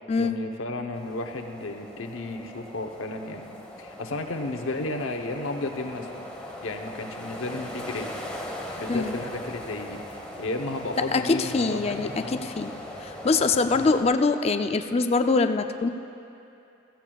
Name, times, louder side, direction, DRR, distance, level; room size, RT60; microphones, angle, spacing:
voice 1, 0.2-6.1 6.6-8.1 8.8-12.4 13.8-13.9, left 2 dB, 90° left, 4 dB, 0.9 m, -33 dB
sound 1, 0.9-14.0, left 1 dB, 5° left, 1.1 m, -40 dB
voice 2, 11.1-12.2 12.6-15.9, left 3 dB, 30° left, 8 dB, 0.4 m, -24 dB
16.0 x 15.0 x 2.3 m, 2.8 s
head